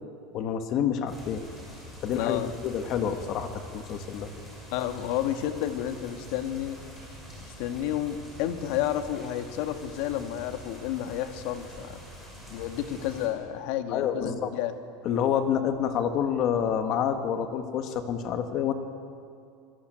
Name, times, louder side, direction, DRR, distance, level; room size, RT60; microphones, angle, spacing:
voice 1, 0.3-1.4 2.0-4.3 13.9-14.5 15.1-18.7, left 8 dB, 35° left, 8 dB, 1.8 m, -28 dB
sound 1, 1.1-13.3, left 1 dB, 10° left, 6.3 m, -45 dB
voice 2, 2.1-2.5 4.7-6.8 7.4-12.0 12.5-14.7, left 11 dB, 55° left, 8 dB, 1.9 m, -31 dB
26.0 x 21.5 x 9.3 m, 2.5 s
supercardioid pair, 170°, 0 cm